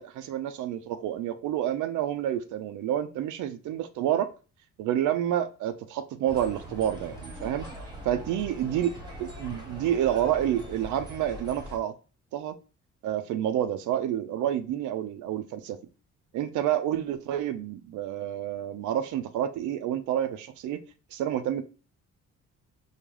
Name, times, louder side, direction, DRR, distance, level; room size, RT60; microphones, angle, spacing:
voice 1, 0.0-4.3 4.8-7.7 8.0-11.9 12.3-12.6 13.0-15.8 16.3-20.8 21.1-21.6, right 11 dB, 80° right, 0.5 m, -29 dB
sound 1, 6.3-11.8, equal, 15° right, 1.0 m, -42 dB
3.8 x 2.2 x 3.1 m
cardioid pair, 90°, 30 cm